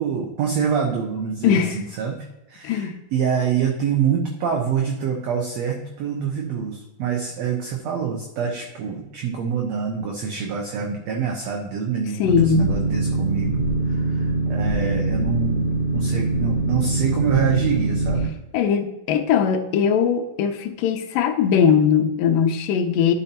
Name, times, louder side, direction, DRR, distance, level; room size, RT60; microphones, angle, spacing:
voice 1, 0.0-18.3, right 7 dB, 70° right, 1 dB, 1.7 m, -26 dB
voice 2, 1.4-1.8 2.6-2.9 12.2-12.7 18.5-23.1, left 7 dB, 85° left, 5 dB, 2.4 m, -20 dB
Boat Water vehicle, 12.2-18.3, right 2 dB, 70° left, 1.4 m, -23 dB
11.5 x 5.3 x 2.8 m, 0.94 s
omnidirectional pair, 3.8 m